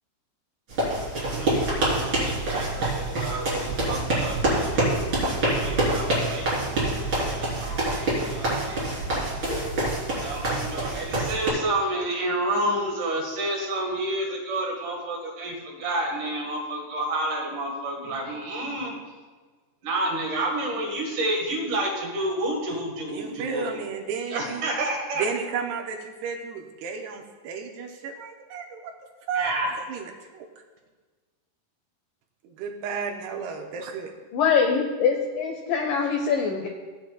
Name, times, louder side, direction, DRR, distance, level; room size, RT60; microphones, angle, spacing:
sound 1, 0.7-11.5, right 1 dB, 30° right, 3.6 m, -26 dB
voice 1, 1.2-9.0 10.2-18.9 19.8-23.7 24.3-25.3 29.3-29.7, right 1 dB, 60° right, 0 dB, 2.6 m, -30 dB
voice 2, 23.1-24.7 25.2-28.9 29.3-29.5 29.9-30.5 32.4-34.1, right 5 dB, 80° right, 2 dB, 2.7 m, -33 dB
voice 3, 34.3-36.7, left 6 dB, 85° left, 3 dB, 1.9 m, -23 dB
17.5 x 8.8 x 2.2 m, 1.4 s
omnidirectional pair, 4.9 m